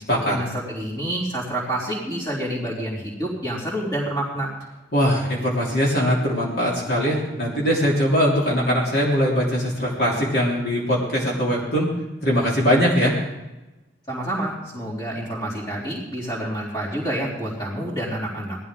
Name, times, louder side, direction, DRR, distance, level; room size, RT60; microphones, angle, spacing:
voice 1, 0.3-4.5 14.1-18.6, right 1 dB, 20° left, -5 dB, 3.6 m, -28 dB
voice 2, 4.9-11.9 12.2-13.1, equal, 55° left, -5 dB, 3.3 m, -21 dB
19.0 x 13.0 x 3.8 m, 1.0 s
head